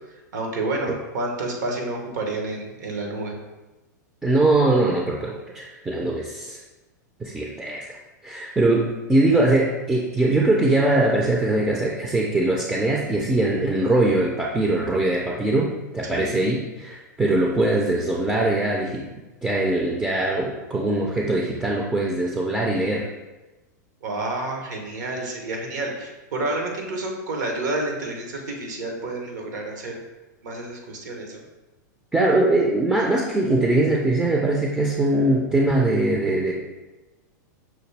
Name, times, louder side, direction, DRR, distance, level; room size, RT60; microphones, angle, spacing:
voice 1, 0.3-3.4 16.1-16.3 24.0-30.0 30.4-31.4, right 2 dB, 70° right, 1 dB, 1.0 m, -29 dB
voice 2, 4.2-6.6 7.2-7.9 8.2-19.1 19.4-23.1 32.1-36.5, right 2 dB, 10° right, -2 dB, 0.4 m, -22 dB
5.8 x 2.2 x 3.3 m, 1.1 s
hypercardioid pair, 110°, 10 cm